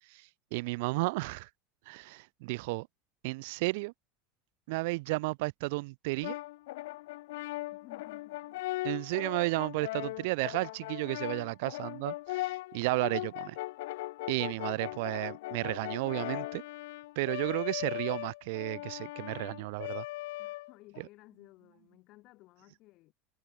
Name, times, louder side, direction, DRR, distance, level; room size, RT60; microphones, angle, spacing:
voice 1, 0.1-1.5 1.9-2.9 3.2-3.9 4.7-6.4 8.8-13.6 14.3-16.6 17.2-20.1, right 24 dB, 70° right, 0.4 m, -33 dB
Brass instrument, 6.2-21.0, left 18 dB, 85° left, 1.8 m, -39 dB
voice 2, 7.7-8.4 14.4-14.5 20.4-23.1, left 19 dB, 50° left, 3.9 m, -57 dB
supercardioid pair, 150°, 0 cm